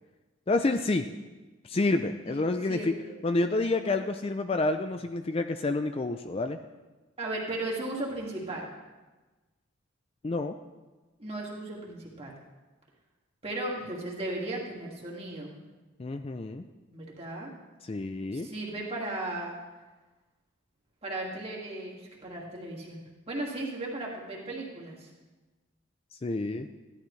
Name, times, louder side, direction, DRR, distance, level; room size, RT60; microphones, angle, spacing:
voice 1, 0.5-1.1 1.6-3.0 3.2-6.6 10.2-10.5 16.0-16.6 17.8-18.5 26.2-26.7, left 2 dB, 30° left, 7 dB, 0.4 m, -28 dB
voice 2, 2.7-3.1 7.2-8.7 11.2-12.3 13.4-15.6 16.9-17.5 18.3-19.5 21.0-25.1, right 2 dB, 30° right, -3 dB, 2.1 m, -36 dB
15.5 x 11.5 x 3.2 m, 1.2 s
head